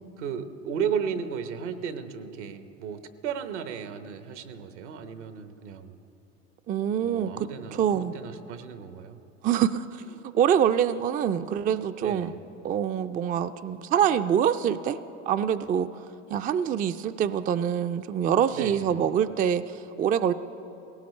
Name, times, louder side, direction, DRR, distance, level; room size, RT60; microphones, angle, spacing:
voice 1, 0.2-6.0 7.0-9.2 12.0-12.4 18.5-18.9, right 7 dB, 80° right, 9 dB, 1.0 m, -34 dB
voice 2, 6.7-8.1 9.4-9.9 10.3-12.3 12.6-15.0 15.3-15.9 16.3-20.3, right 9 dB, 25° right, 11 dB, 0.4 m, -25 dB
18.0 x 16.5 x 3.2 m, 2.8 s
hypercardioid pair, 85°, 34 cm